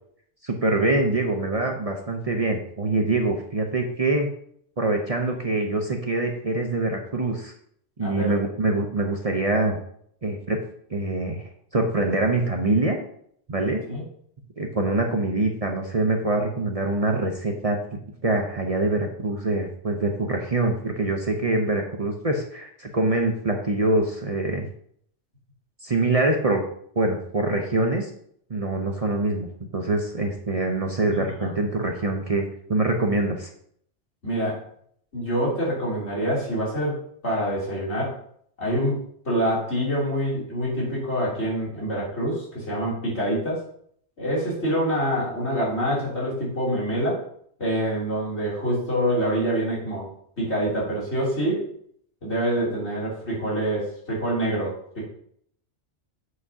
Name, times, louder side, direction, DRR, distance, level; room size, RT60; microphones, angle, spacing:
voice 1, 0.4-4.3 4.8-7.5 8.0-9.8 10.2-10.6 10.9-11.4 11.7-13.0 13.5-13.8 14.6-17.8 18.2-24.7 25.8-26.6 27.0-28.1 28.5-33.5, right 2 dB, 35° right, 2 dB, 0.8 m, -24 dB
voice 2, 8.0-8.4 13.9-14.0 31.1-31.5 34.2-34.6 35.1-37.0 37.2-38.2 38.6-43.6 44.2-47.2 47.6-50.1 50.4-51.7 52.2-55.0, equal, 75° left, -6 dB, 3.4 m, -26 dB
8.1 x 7.2 x 2.8 m, 0.65 s
omnidirectional pair, 1.2 m